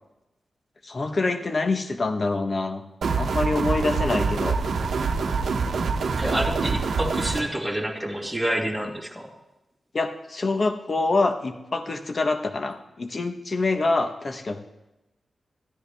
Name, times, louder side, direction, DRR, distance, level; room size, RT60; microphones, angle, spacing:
voice 1, 0.8-2.8 3.2-4.6 9.9-14.6, left 3 dB, 50° left, 7 dB, 1.1 m, -25 dB
sound 1, 3.0-7.4, right 4 dB, 85° right, 0.9 m, -25 dB
voice 2, 6.2-9.3, right 1 dB, ahead, 0 dB, 2.0 m, -28 dB
13.0 x 10.0 x 3.5 m, 0.95 s
cardioid pair, 60°, 0 cm